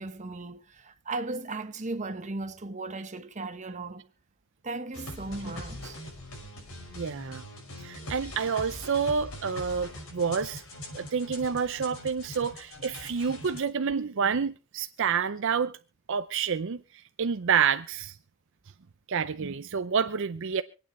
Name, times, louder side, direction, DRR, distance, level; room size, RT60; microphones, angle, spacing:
voice 1, 0.0-4.1 4.6-6.0, right 2 dB, 35° right, 1.0 m, -36 dB
sound 1, 4.9-13.6, left 1 dB, 80° left, 5.9 m, -42 dB
voice 2, 6.9-7.4 7.8-10.6 10.9-15.7 16.1-18.1 19.1-20.6, right 6 dB, 65° right, 0.6 m, -28 dB
26.0 x 9.0 x 3.2 m
head